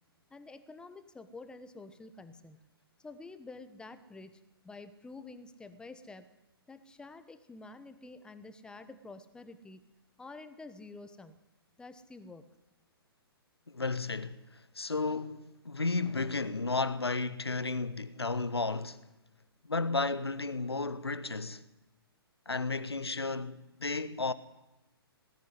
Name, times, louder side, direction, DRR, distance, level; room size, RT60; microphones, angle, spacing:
voice 1, 0.3-2.6 3.0-6.3 6.7-9.9 10.2-11.4 11.8-12.4, left 3 dB, 5° left, 1.1 m, -49 dB
voice 2, 13.7-19.0 19.6-21.6 22.5-24.3, left 3 dB, 80° left, 1.3 m, -33 dB
19.5 x 13.5 x 9.9 m
figure-of-eight pair, 125°, 13 cm